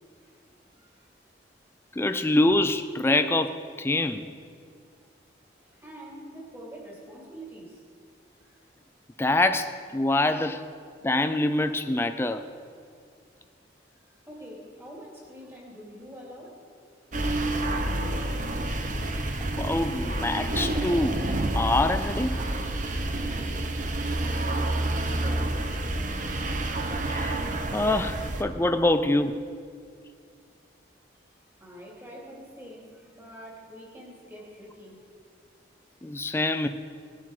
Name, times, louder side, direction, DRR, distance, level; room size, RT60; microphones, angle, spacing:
voice 1, 0.8-1.1 5.6-7.8 8.4-8.6 14.3-16.6 24.0-25.6 31.6-35.0, equal, 15° right, -3 dB, 2.6 m, -45 dB
voice 2, 2.0-4.3 9.2-10.6 11.0-12.4 19.6-22.4 27.1-27.4 27.7-29.4 36.0-36.7, left 2 dB, 15° left, 9 dB, 0.4 m, -25 dB
sound 1, 17.1-28.4, right 1 dB, 45° right, 0.9 m, -29 dB
18.5 x 7.4 x 4.8 m, 2.2 s
head